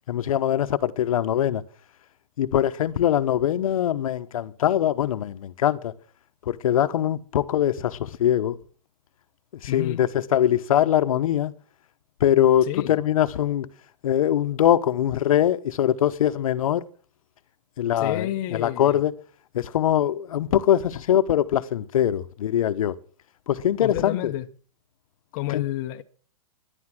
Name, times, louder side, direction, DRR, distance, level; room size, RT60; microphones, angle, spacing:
voice 1, 0.1-1.6 2.4-5.9 6.5-8.6 9.6-11.5 12.2-13.7 14.0-16.8 17.8-19.1 19.5-22.9 23.5-24.3 25.5-25.6, left 11 dB, 65° left, 0.9 m, -22 dB
voice 2, 9.7-10.0 12.6-13.0 17.9-19.0 23.8-24.5 25.3-26.0, left 14 dB, 35° left, 0.8 m, -30 dB
13.5 x 11.0 x 6.2 m
hypercardioid pair, 150°, 19 cm